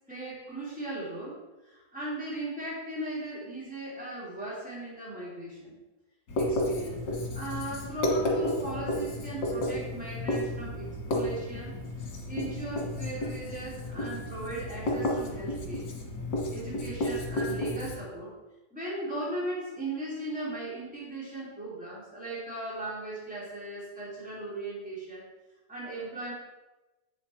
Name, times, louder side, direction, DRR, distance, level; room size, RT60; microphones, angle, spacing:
voice 1, 0.1-1.4 1.6-5.8 6.4-11.7 12.3-15.8 16.5-18.3 18.7-25.3 25.7-26.3, right 1 dB, 5° right, -7 dB, 2.8 m, -38 dB
Writing, 6.3-18.0, left 1 dB, 90° left, 2.0 m, -32 dB
7.8 x 6.0 x 4.4 m, 1.1 s
omnidirectional pair, 1.8 m